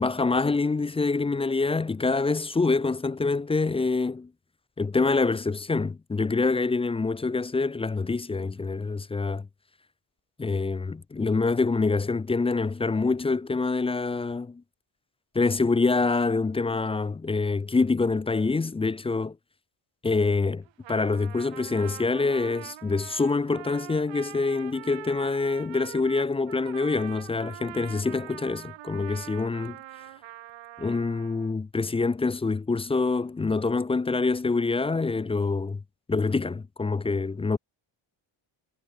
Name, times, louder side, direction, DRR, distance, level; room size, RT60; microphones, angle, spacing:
voice 1, 0.0-4.3 4.8-9.5 10.4-14.6 15.3-19.3 20.0-29.8 30.8-35.8 36.1-37.6, left 3 dB, 15° left, 0.4 m, -26 dB
Trumpet, 20.6-31.5, right 15 dB, 65° right, 1.3 m, -44 dB
cardioid pair, 120°, 48 cm